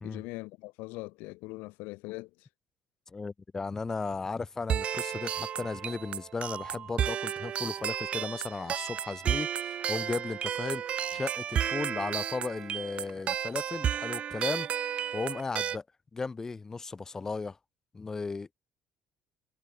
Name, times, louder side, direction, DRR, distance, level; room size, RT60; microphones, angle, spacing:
voice 1, 0.0-2.5, left 24 dB, 90° left, 1.1 m, -41 dB
voice 2, 3.1-10.8 11.1-14.7 15.1-15.8 16.1-17.6 17.9-18.5, left 4 dB, 20° left, 0.4 m, -35 dB
sound 1, 4.7-15.8, right 9 dB, 45° right, 0.6 m, -32 dB
cardioid pair, 125°, 3 cm